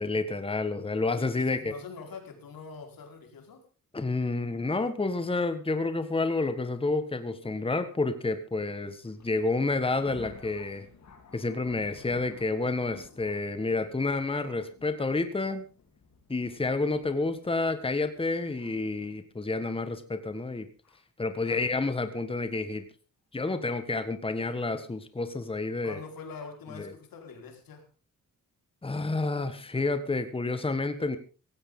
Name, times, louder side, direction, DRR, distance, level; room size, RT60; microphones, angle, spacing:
voice 1, 0.0-1.7 3.9-10.9 11.3-15.7 16.3-20.7 21.2-22.8 23.3-26.0 26.8-26.9 28.8-31.2, left 3 dB, 15° left, 9 dB, 1.5 m, -29 dB
voice 2, 1.1-3.6 21.4-21.7 25.8-27.9, left 5 dB, 90° left, 4 dB, 4.7 m, -44 dB
Thunder, 9.0-19.0 19.7-19.8 20.8-21.0 21.7-21.9, left 5 dB, 55° left, 3.7 m, -54 dB
17.0 x 16.0 x 3.8 m, 0.34 s
wide cardioid pair, 130°, 34 cm